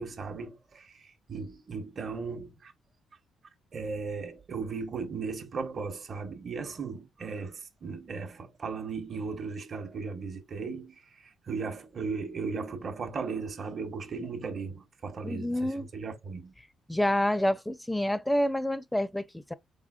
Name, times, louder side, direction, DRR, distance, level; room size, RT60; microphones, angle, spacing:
voice 1, 0.0-2.7 3.7-16.5, right 4 dB, 45° right, 1.0 m, -37 dB
voice 2, 15.2-15.9 16.9-19.5, left 1 dB, 5° left, 0.5 m, -28 dB
4.1 x 3.7 x 2.4 m
cardioid pair, 90°, 0 cm